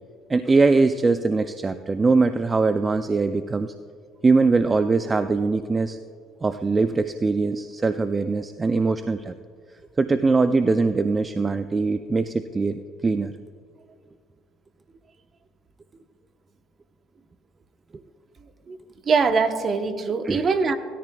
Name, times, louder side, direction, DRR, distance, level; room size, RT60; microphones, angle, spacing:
voice 1, 0.3-3.7 4.2-6.0 6.4-9.3 10.0-13.3 20.2-20.5, right 3 dB, 25° right, 10 dB, 0.4 m, -22 dB
voice 2, 19.1-20.8, right 4 dB, 40° right, 8 dB, 0.9 m, -22 dB
18.5 x 13.5 x 2.3 m, 2.1 s
supercardioid pair, 90°, 0 cm